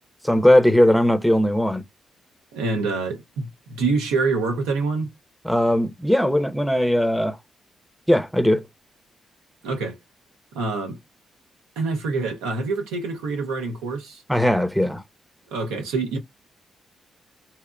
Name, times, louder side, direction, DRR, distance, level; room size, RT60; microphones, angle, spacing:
voice 1, 0.2-1.8 5.4-7.4 8.1-8.6 14.3-15.0, left 1 dB, ahead, 0.6 m, -19 dB
voice 2, 2.5-5.1 9.6-10.0 10.5-11.0 11.8-14.2 15.5-16.2, right 3 dB, 85° right, 0.6 m, -26 dB
2.8 x 2.0 x 2.4 m
hypercardioid pair, 45°, 0 cm